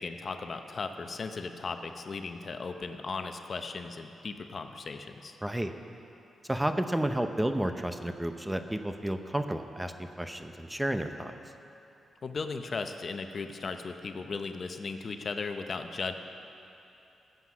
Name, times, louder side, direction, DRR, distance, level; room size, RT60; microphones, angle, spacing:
voice 1, 0.0-5.4 12.2-16.1, left 4 dB, 50° left, 7 dB, 0.8 m, -37 dB
voice 2, 5.4-5.7 6.5-11.3, right 1 dB, 10° right, 7 dB, 0.7 m, -31 dB
15.0 x 8.0 x 6.1 m, 2.8 s
cardioid pair, 75°, 0 cm